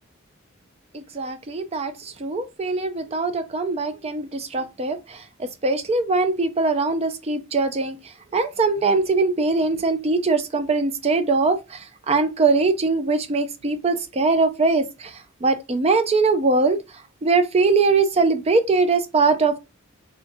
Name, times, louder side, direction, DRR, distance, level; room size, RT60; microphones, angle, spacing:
voice 1, 0.9-1.9 2.2-5.2 5.6-8.0 8.3-11.6 12.1-15.1 15.4-16.8 17.2-19.6, right 3 dB, 30° right, 0.5 m, -21 dB
3.7 x 2.3 x 2.7 m
head